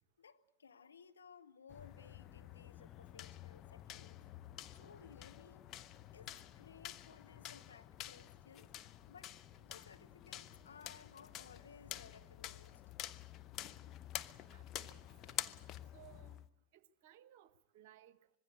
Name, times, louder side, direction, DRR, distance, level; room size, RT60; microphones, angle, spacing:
voice 1, 0.2-4.2 4.7-5.6 6.1-8.7 9.1-9.3 9.6-12.8, left 6 dB, 70° left, 1.2 m, -59 dB
sound 1, 1.7-16.5, left 12 dB, 35° left, 0.9 m, -49 dB
voice 2, 14.4-15.5 15.9-16.4 16.7-18.4, right 12 dB, 50° right, 1.2 m, -63 dB
25.5 x 21.5 x 8.0 m
figure-of-eight pair, 90°, 0 cm